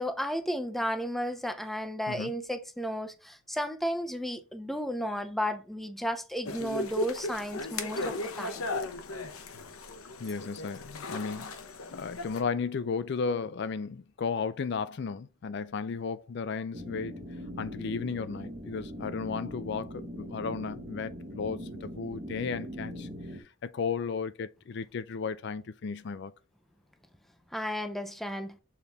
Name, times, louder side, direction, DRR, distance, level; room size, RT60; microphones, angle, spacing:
voice 1, 0.0-8.6 27.5-28.6, equal, ahead, 0.5 m, -33 dB
sound 1, 6.5-12.4, left 2 dB, 85° left, 1.0 m, -36 dB
voice 2, 10.2-11.5 11.9-17.2 17.6-26.3, left 5 dB, 55° left, 0.4 m, -34 dB
sound 2, 16.7-23.4, equal, 35° right, 1.0 m, -41 dB
7.0 x 4.1 x 3.4 m
head